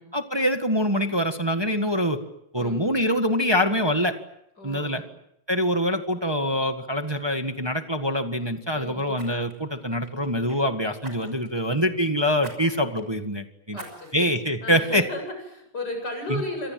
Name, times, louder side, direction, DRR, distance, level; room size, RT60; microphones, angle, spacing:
voice 1, 0.1-2.2 2.5-4.2 4.6-5.0 5.5-13.8 14.1-15.1 16.3-16.4, equal, 15° right, 6 dB, 1.7 m, -24 dB
voice 2, 4.6-5.1 8.7-9.2 13.7-14.1 14.6-16.7, left 2 dB, 80° left, 5 dB, 8.4 m, -34 dB
Fire, 6.4-6.7 7.0-7.2 9.1-10.6 11.0-11.6 12.4-12.6 13.0-13.1 13.7-14.3 14.9-15.0, right 1 dB, 50° right, 6.8 m, -44 dB
28.5 x 26.5 x 7.7 m, 0.78 s
omnidirectional pair, 1.8 m